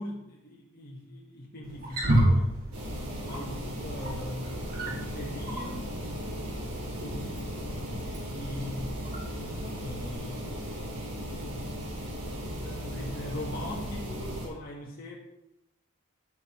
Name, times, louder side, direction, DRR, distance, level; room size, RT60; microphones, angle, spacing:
voice 1, 0.0-2.6 3.2-4.5 4.8-6.0 7.0-7.4 8.0-9.0 9.8-10.5 12.6-15.2, left 1 dB, 40° left, -4 dB, 1.7 m, -40 dB
Wild animals, 1.6-10.1, right 1 dB, 40° right, 2.8 m, -32 dB
sound 1, 2.7-14.5, equal, 85° right, 4.1 m, -36 dB
11.5 x 7.9 x 4.5 m, 0.89 s
head